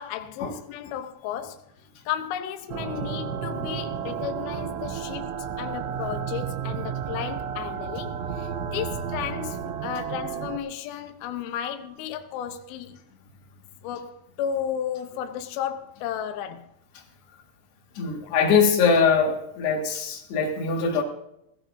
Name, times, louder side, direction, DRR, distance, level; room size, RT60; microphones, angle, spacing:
voice 1, 0.0-1.7 2.1-13.0 13.8-16.7 18.2-18.3, left 9 dB, 80° left, 2.2 m, -33 dB
sound 1, 2.7-10.6, right 7 dB, 80° right, 3.2 m, -32 dB
voice 2, 18.0-21.0, left 5 dB, 65° left, 3.7 m, -22 dB
18.5 x 16.0 x 2.7 m
omnidirectional pair, 5.6 m